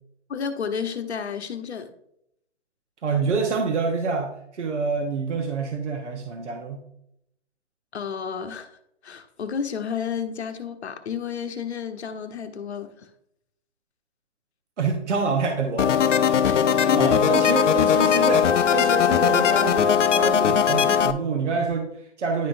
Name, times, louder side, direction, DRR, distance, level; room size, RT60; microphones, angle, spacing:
voice 1, 0.3-1.9 7.9-13.1 16.4-17.3 17.6-17.7, left 6 dB, 65° left, 8 dB, 0.9 m, -32 dB
voice 2, 3.0-6.8 14.8-15.9 16.9-22.5, right 4 dB, 75° right, 3 dB, 1.1 m, -27 dB
sound 1, 15.8-21.1, left 8 dB, 90° left, 0.6 m, -19 dB
10.5 x 3.9 x 2.6 m, 0.76 s
hypercardioid pair, 170°, 36 cm